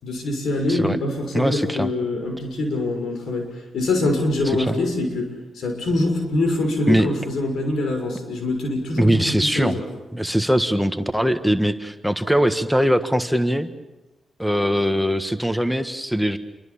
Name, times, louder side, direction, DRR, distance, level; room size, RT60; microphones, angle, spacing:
voice 1, 0.0-9.8, left 2 dB, 80° left, 4 dB, 6.5 m, -24 dB
voice 2, 1.3-1.9 4.4-4.8 6.9-7.1 9.0-9.8 10.1-13.7 14.4-16.4, equal, ahead, 8 dB, 1.6 m, -21 dB
28.5 x 23.5 x 7.2 m, 1.1 s
cardioid pair, 60°, 0 cm